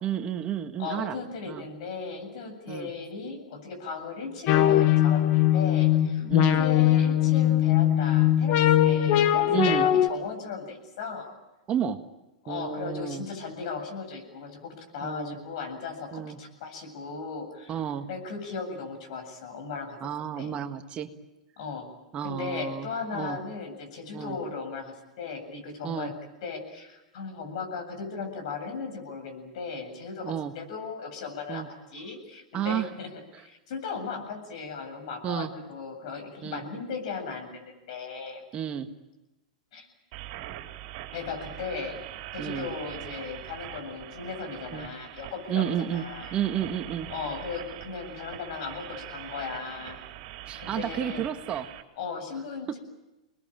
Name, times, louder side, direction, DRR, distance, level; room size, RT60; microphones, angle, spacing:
voice 1, 0.0-1.2 1.5-1.6 2.7-2.9 6.2-6.6 9.5-9.9 11.7-12.0 12.5-13.2 15.0-15.4 16.1-16.4 17.7-18.1 20.0-21.1 22.1-22.9 23.1-23.4 24.1-24.4 25.8-26.1 30.2-30.5 31.5-31.7 32.5-32.9 35.2-35.5 36.4-36.6 38.5-38.9 42.4-42.7 44.7-44.9 45.5-46.0 46.3-47.1 50.5-51.7, right 9 dB, 30° right, 7 dB, 1.6 m, -31 dB
voice 2, 0.8-11.3 12.4-17.8 18.1-20.1 20.3-20.5 21.6-21.9 22.2-26.1 26.4-31.6 31.9-38.4 39.7-39.9 41.1-42.0 42.3-46.4 47.1-50.0 50.6-51.2 52.0-52.8, left 5 dB, 60° left, 4 dB, 7.8 m, -37 dB
sound 1, 4.5-10.1, left 12 dB, 45° left, 1.4 m, -21 dB
sound 2, 40.1-51.8, right 14 dB, 55° right, 3.2 m, -42 dB
26.5 x 21.0 x 8.9 m, 1.0 s
hypercardioid pair, 115°, 4 cm